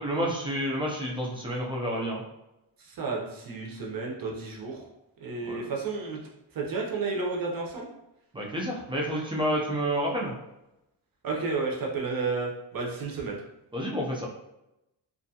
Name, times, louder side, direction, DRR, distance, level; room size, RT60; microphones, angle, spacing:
voice 1, 0.0-2.2 5.4-5.7 8.3-10.3 13.7-14.3, equal, 15° right, -4 dB, 0.3 m, -29 dB
voice 2, 2.9-4.8 5.2-6.2 6.5-7.9 11.2-13.4, right 4 dB, 50° right, -1 dB, 0.6 m, -31 dB
2.5 x 2.3 x 2.6 m, 0.89 s
wide cardioid pair, 180°, 44 cm